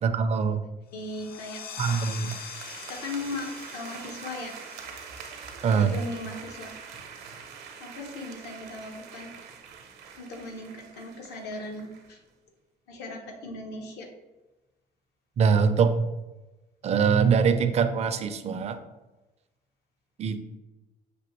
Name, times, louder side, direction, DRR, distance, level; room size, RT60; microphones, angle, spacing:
voice 1, 0.0-0.6 1.8-2.4 5.6-5.9 15.4-16.1 16.8-18.8 20.2-20.4, right 6 dB, 40° right, 9 dB, 0.4 m, -23 dB
voice 2, 0.9-1.6 2.9-4.5 5.7-6.7 7.8-9.3 10.1-12.2 12.9-14.1, left 2 dB, 80° left, 2 dB, 1.0 m, -38 dB
sound 1, 0.9-6.3, left 6 dB, 65° left, 0.5 m, -43 dB
sound 2, 1.8-12.1, right 6 dB, 75° right, 0.7 m, -44 dB
6.0 x 2.8 x 3.0 m, 1.1 s
cardioid pair, 110°, 17 cm